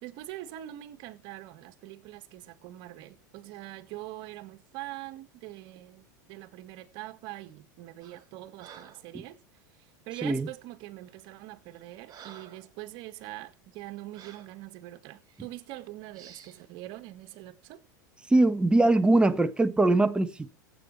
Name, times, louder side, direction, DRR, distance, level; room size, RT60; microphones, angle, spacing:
voice 1, 0.0-9.4 9.8-17.8, right 15 dB, 55° right, 1.8 m, -43 dB
Breathing, 8.0-8.3 8.6-9.1 10.1-10.4 11.1-11.3 11.7-12.7 13.2-13.3 14.1-14.5 15.3-15.5 16.1-16.6, right 8 dB, 35° right, 4.5 m, -51 dB
voice 2, 18.3-20.5, right 2 dB, 10° right, 1.2 m, -22 dB
15.5 x 8.5 x 5.6 m
hypercardioid pair, 100°, 10 cm